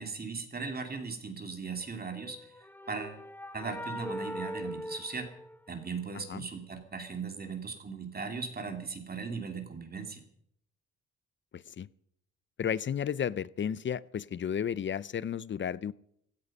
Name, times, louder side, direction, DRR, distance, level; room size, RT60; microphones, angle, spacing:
voice 1, 0.0-2.4 2.9-3.2 3.5-5.3 5.7-10.2, right 4 dB, 30° right, 2.7 m, -38 dB
sound 1, 2.1-6.0, equal, 5° left, 0.8 m, -41 dB
voice 2, 11.5-11.9 12.6-15.9, left 8 dB, 40° left, 0.6 m, -33 dB
17.0 x 14.0 x 5.5 m
cardioid pair, 90°, 30 cm